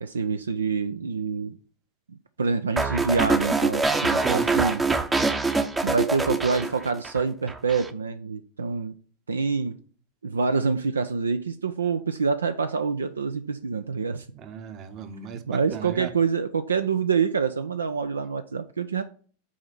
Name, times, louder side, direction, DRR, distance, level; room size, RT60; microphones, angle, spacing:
voice 1, 0.0-1.6 2.1-4.8 5.8-9.0 9.3-9.8 10.2-14.3 15.5-19.0, right 5 dB, 75° right, 0.5 m, -26 dB
sound 1, 2.8-7.2 7.5-7.9, right 3 dB, 15° right, 0.7 m, -24 dB
voice 2, 14.3-16.1, right 7 dB, 35° right, 1.0 m, -36 dB
7.3 x 4.3 x 5.9 m
figure-of-eight pair, 90°, 0 cm